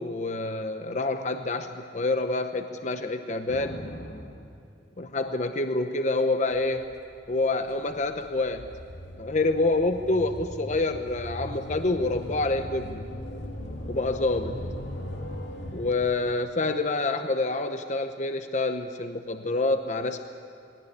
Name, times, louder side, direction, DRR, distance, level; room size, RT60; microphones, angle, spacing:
voice 1, 0.0-3.8 5.0-6.9 7.3-8.7 9.2-13.1 13.9-14.6 15.7-20.2, left 2 dB, 40° left, 7 dB, 0.8 m, -27 dB
sound 1, 3.5-4.5 6.5-15.9, equal, 80° left, 2.1 m, -39 dB
20.5 x 18.0 x 9.6 m, 2.5 s
head